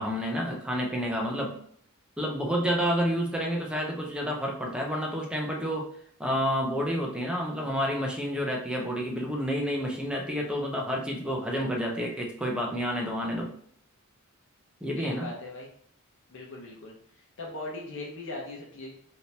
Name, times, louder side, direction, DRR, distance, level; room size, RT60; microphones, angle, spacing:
voice 1, 0.0-1.5 2.2-5.9 6.2-13.5 14.8-15.3, equal, 5° right, -1 dB, 0.6 m, -29 dB
voice 2, 14.9-15.7 16.3-17.0 17.4-18.9, left 2 dB, 65° left, -1 dB, 0.9 m, -39 dB
3.4 x 2.8 x 2.8 m, 0.62 s
head